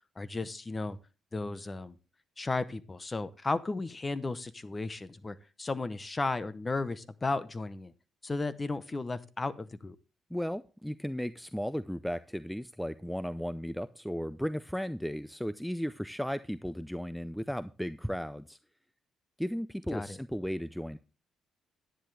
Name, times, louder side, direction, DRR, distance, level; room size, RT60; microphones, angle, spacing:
voice 1, 0.2-1.0 1.3-2.0 2.4-7.9 8.2-10.0 19.9-20.2, left 3 dB, 25° left, 15 dB, 0.9 m, -34 dB
voice 2, 10.3-18.6 19.4-21.0, equal, ahead, 15 dB, 0.5 m, -35 dB
10.5 x 10.0 x 3.4 m, 0.34 s
cardioid pair, 90°, 0 cm